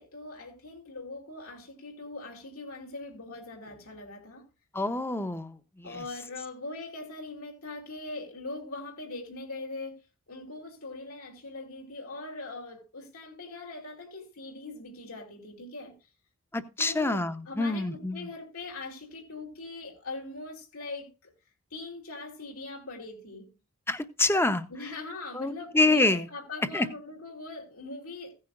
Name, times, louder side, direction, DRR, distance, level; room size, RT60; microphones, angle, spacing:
voice 1, 0.0-4.4 5.8-16.1 16.8-21.3 21.7-23.5 24.7-28.4, left 3 dB, 80° left, 3.2 m, -41 dB
voice 2, 4.7-5.9 16.5-18.3 23.9-24.6 25.3-26.2 26.7-26.9, left 2 dB, 10° left, 0.7 m, -27 dB
16.0 x 9.8 x 2.5 m
head